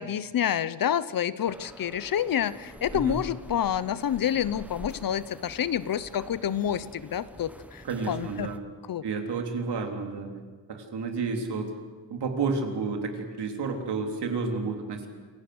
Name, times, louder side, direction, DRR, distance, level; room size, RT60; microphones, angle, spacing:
voice 1, 0.0-8.5 8.9-9.0, left 9 dB, 50° left, 16 dB, 0.8 m, -28 dB
sound 1, 1.4-8.6, equal, 5° right, 1.1 m, -45 dB
voice 2, 7.8-8.6 9.0-10.3 10.7-11.7 12.1-15.1, right 4 dB, 65° right, 4 dB, 3.7 m, -31 dB
27.5 x 16.5 x 8.0 m, 1.5 s
cardioid pair, 130°, 43 cm